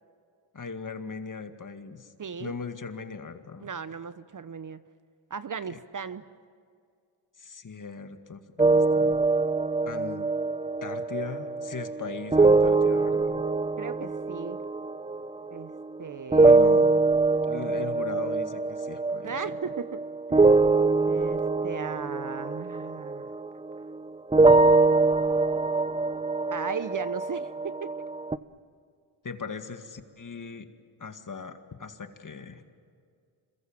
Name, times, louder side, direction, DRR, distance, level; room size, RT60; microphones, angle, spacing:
voice 1, 0.5-2.1 2.4-3.7 5.7-5.8 7.4-9.2 9.9-10.3 10.8-13.5 16.4-17.0 17.5-19.4 29.2-30.7 31.0-32.6, left 5 dB, 40° left, 7 dB, 2.1 m, -39 dB
voice 2, 2.2-2.5 3.6-4.8 5.3-6.2 13.8-14.6 15.5-15.7 16.0-16.6 19.2-20.0 20.3-20.6 21.1-23.2 26.5-27.9, right 6 dB, 40° right, 14 dB, 0.9 m, -36 dB
sound 1, 8.6-16.0 16.3-24.0 24.3-28.4, right 3 dB, 10° right, 0.6 m, -23 dB
27.0 x 22.5 x 7.5 m, 2.3 s
cardioid pair, 65°, 50 cm